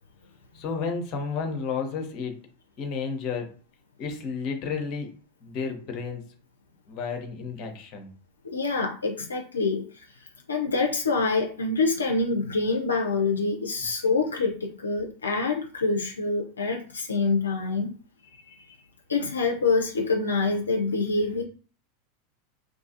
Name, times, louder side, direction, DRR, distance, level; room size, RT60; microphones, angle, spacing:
voice 1, 0.5-2.4 2.8-3.5 4.0-5.1 5.4-6.3 6.9-8.1, left 5 dB, 45° left, 4 dB, 0.7 m, -32 dB
voice 2, 8.5-9.8 10.5-17.9 19.1-21.4, left 3 dB, 85° left, 1 dB, 0.4 m, -26 dB
2.6 x 2.3 x 2.6 m, 0.39 s
figure-of-eight pair, 90°, 0 cm